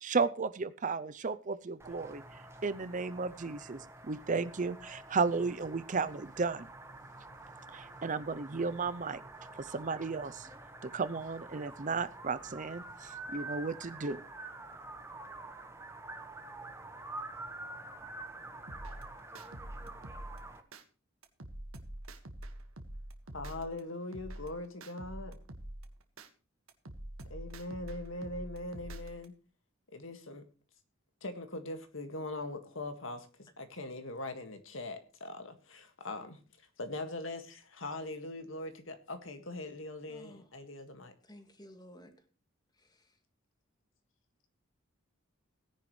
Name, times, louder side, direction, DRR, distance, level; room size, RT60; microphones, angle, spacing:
voice 1, 0.0-6.7 7.7-9.2 9.5-10.5 10.8-14.2, right 4 dB, 40° right, 0.6 m, -34 dB
sound 1, 1.8-20.6, right 2 dB, 15° right, 1.4 m, -47 dB
sound 2, 18.7-20.8 21.2-23.8 24.1-26.3 26.7-29.3, right 1 dB, 85° right, 1.7 m, -46 dB
voice 2, 23.3-25.4 27.3-29.4 29.9-30.4 31.2-36.4 36.8-41.1, left 2 dB, 70° left, 1.9 m, -41 dB
voice 3, 40.1-40.4 41.2-42.1 42.8-43.0, equal, 20° left, 2.0 m, -54 dB
17.5 x 10.0 x 3.2 m
head